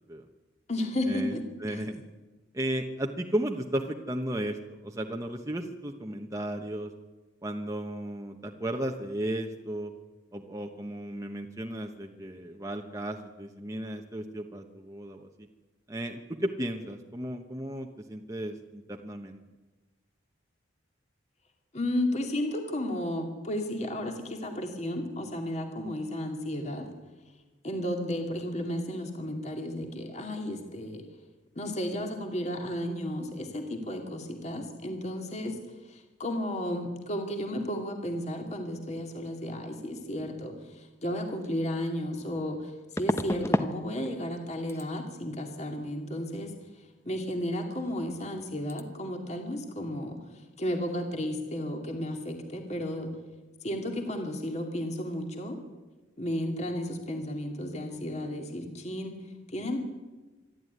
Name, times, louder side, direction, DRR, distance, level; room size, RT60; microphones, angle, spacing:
voice 1, 0.7-1.8 21.7-26.9 27.6-31.0 31.6-35.6 35.8-53.1 53.6-55.6 56.2-59.2 59.5-59.8, left 1 dB, 35° left, 4 dB, 2.5 m, -33 dB
voice 2, 1.6-2.0 2.5-6.9 7.4-9.9 10.3-15.5 15.9-19.4, right 1 dB, 15° right, 2 dB, 1.1 m, -34 dB
sound 1, 41.4-41.5 43.0-43.7 44.0-44.4 44.7-44.9 47.8-47.9 48.2-48.4 48.7-48.8, left 1 dB, 15° left, 0.9 m, -30 dB
26.5 x 12.0 x 9.4 m, 1.2 s
head